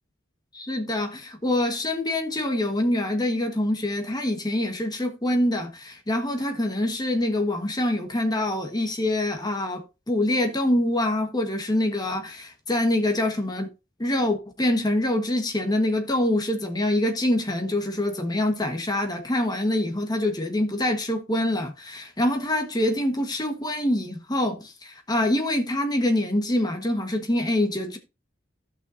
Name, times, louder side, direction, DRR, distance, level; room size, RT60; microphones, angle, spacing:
voice 1, 0.5-13.7 14.0-28.0, left 1 dB, 20° left, 1.4 m, -25 dB
15.0 x 5.6 x 2.7 m
head